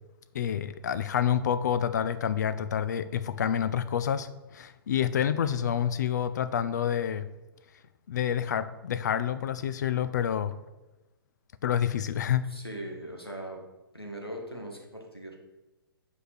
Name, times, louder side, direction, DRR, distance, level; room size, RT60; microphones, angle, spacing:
voice 1, 0.3-7.2 8.1-10.6 11.6-12.5, left 9 dB, 50° left, 13 dB, 0.6 m, -28 dB
voice 2, 12.5-13.6 13.9-15.4, right 1 dB, 90° left, 2 dB, 2.0 m, -40 dB
8.0 x 5.3 x 6.2 m, 1.0 s
figure-of-eight pair, 120°, 12 cm